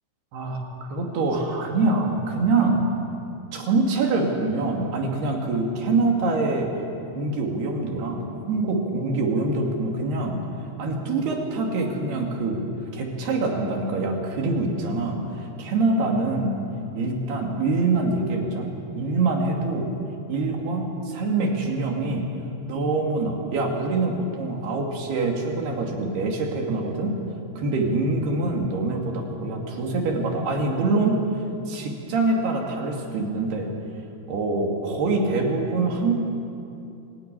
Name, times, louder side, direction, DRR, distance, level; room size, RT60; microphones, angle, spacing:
voice 1, 0.9-2.8 3.5-6.7 7.1-10.4 10.8-12.6 12.9-16.5 17.0-19.9 20.3-22.2 22.7-27.2 27.6-31.2 31.7-33.7 34.3-36.2, right 3 dB, 65° right, 1 dB, 4.2 m, -25 dB
26.0 x 14.5 x 10.0 m, 2.7 s
omnidirectional pair, 5.3 m